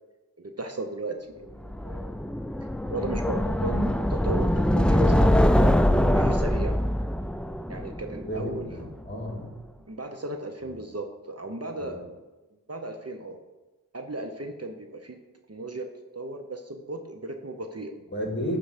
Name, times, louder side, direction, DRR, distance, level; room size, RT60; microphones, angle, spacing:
voice 1, 0.4-2.2 2.9-5.7 6.0-6.8 7.7-8.7 9.9-12.0 12.7-13.4 13.9-15.2 15.5-15.8 16.1-17.9, right 2 dB, 45° right, 5 dB, 0.8 m, -35 dB
sound 1, 1.7-8.7, equal, 5° left, 0.3 m, -23 dB
voice 2, 8.2-9.5 10.6-10.7 11.8-12.0 18.1-18.6, equal, 30° left, 0 dB, 2.1 m, -33 dB
12.0 x 4.0 x 5.0 m, 1.2 s
wide cardioid pair, 45°, 35 cm